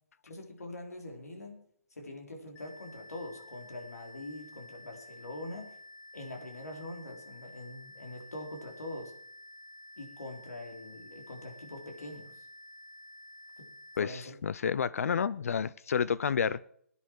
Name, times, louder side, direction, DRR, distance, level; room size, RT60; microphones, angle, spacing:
voice 1, 0.2-1.6 1.9-5.8 6.1-9.1 10.0-12.5 13.6-13.7 14.0-14.4, left 1 dB, 90° left, 3.6 m, -43 dB
sound 1, 2.6-14.0, left 1 dB, 30° left, 1.9 m, -51 dB
voice 2, 14.0-16.7, left 7 dB, 70° left, 0.5 m, -30 dB
17.0 x 9.9 x 4.6 m
hypercardioid pair, 145°, 8 cm